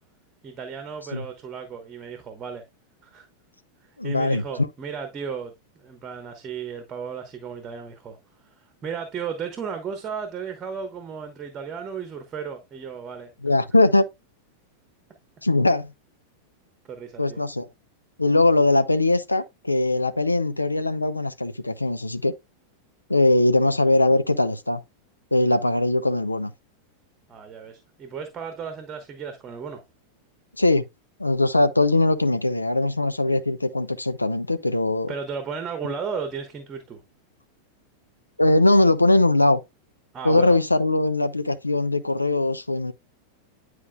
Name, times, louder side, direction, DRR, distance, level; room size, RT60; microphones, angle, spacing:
voice 1, 0.4-2.6 3.0-3.3 3.8-5.5 5.8-8.2 8.4-13.6 16.9-17.4 27.3-29.8 35.1-37.0 40.1-40.6, right 6 dB, 25° right, 1.2 m, -34 dB
voice 2, 4.0-4.4 13.4-14.1 15.4-15.9 17.2-17.7 18.2-22.3 23.1-24.8 25.3-26.5 30.6-30.8 31.2-35.1 38.4-39.6 40.2-42.9, left 2 dB, 85° left, 0.6 m, -21 dB
9.9 x 4.8 x 2.3 m
figure-of-eight pair, 90°, 0 cm